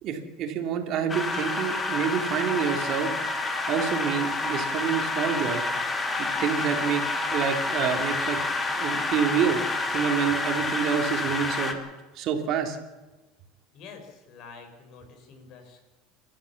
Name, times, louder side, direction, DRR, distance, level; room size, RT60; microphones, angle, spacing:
voice 1, 0.0-3.1 3.7-5.6 6.2-7.0 7.3-8.4 8.8-9.6 9.9-11.8 12.1-12.8, right 7 dB, 50° right, 4 dB, 3.0 m, -27 dB
sound 1, 1.1-11.7, left 3 dB, 20° left, 2.6 m, -28 dB
voice 2, 13.7-15.8, left 5 dB, 55° left, 5 dB, 5.7 m, -47 dB
29.5 x 12.5 x 7.3 m, 1.2 s
supercardioid pair, 125°, 0 cm